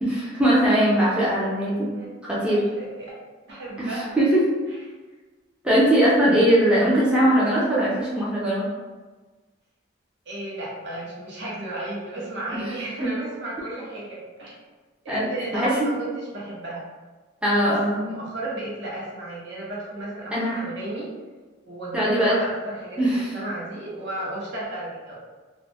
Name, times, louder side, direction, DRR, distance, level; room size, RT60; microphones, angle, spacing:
voice 1, 0.0-1.9 2.2-2.6 3.8-4.5 5.6-8.7 12.5-12.7 15.1-15.9 17.4-18.2 20.3-20.6 21.9-22.4 23.0-23.3, right 1 dB, 5° right, -8 dB, 0.4 m, -21 dB
voice 2, 1.6-3.1 3.5-4.2 10.3-14.5 15.0-16.8 17.7-21.1 21.7-23.0 23.3-25.1, right 2 dB, 60° right, -6 dB, 0.9 m, -34 dB
2.3 x 2.0 x 3.3 m, 1.3 s
head